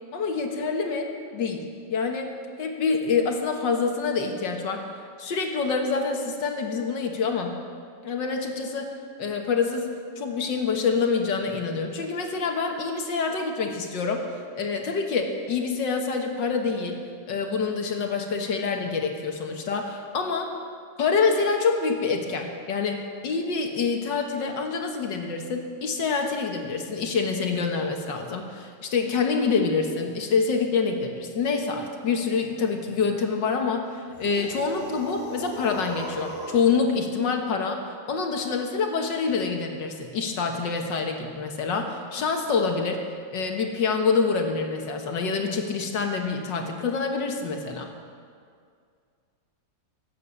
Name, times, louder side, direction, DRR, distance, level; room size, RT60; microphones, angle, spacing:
voice 1, 0.1-1.6 1.9-4.8 5.2-7.5 8.0-9.9 10.2-14.2 14.5-17.0 17.3-20.5 21.0-37.8 38.1-43.0 43.3-47.9, left 5 dB, 70° left, 3 dB, 1.9 m, -26 dB
sound 1, 34.1-36.7, right 2 dB, 15° right, 3.8 m, -37 dB
17.5 x 8.5 x 7.2 m, 2.2 s
omnidirectional pair, 2.0 m